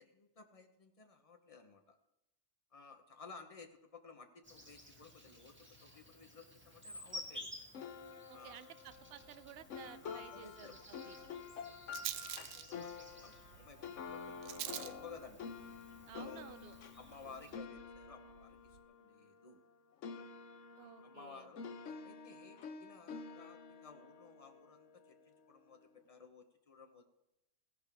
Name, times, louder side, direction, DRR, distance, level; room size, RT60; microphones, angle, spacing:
voice 1, 0.0-2.0 2.7-7.5 8.3-8.6 10.0-10.7 11.2-15.5 16.1-16.4 16.9-19.6 20.8-21.7 22.0-27.0, left 5 dB, 25° left, 5 dB, 1.1 m, -56 dB
Insect, 4.4-17.5, left 1 dB, 10° right, 1.6 m, -54 dB
sound 1, 7.7-19.7 20.0-25.2, left 5 dB, 60° left, 1.1 m, -49 dB
voice 2, 8.3-11.2 16.1-16.8 17.1-17.5 20.7-21.5, right 9 dB, 55° right, 13 dB, 0.8 m, -55 dB
Rattle, 8.9-18.8, right 12 dB, 85° right, 1.1 m, -50 dB
16.5 x 11.0 x 3.5 m, 0.92 s
omnidirectional pair, 1.5 m